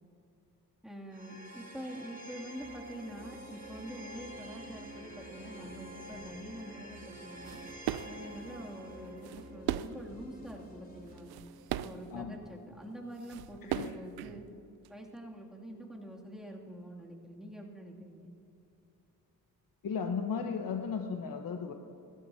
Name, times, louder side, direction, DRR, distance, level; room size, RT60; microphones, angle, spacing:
voice 1, 0.8-7.6 8.1-11.3 11.8-14.5 14.9-18.3, equal, ahead, -2 dB, 2.6 m, -45 dB
sound 1, 1.1-12.2, right 1 dB, 25° right, 2.3 m, -49 dB
sound 2, 2.6-11.2, left 4 dB, 25° left, 3.6 m, -57 dB
sound 3, 7.1-8.3 8.9-10.1 10.5-10.6 11.1-12.1 12.9-13.0 13.2-14.9, right 12 dB, 90° right, 0.5 m, -38 dB
voice 2, 13.6-13.9 19.8-21.7, left 6 dB, 65° left, 4 dB, 1.1 m, -35 dB
26.5 x 12.5 x 2.8 m, 2.9 s
cardioid pair, 60°, 37 cm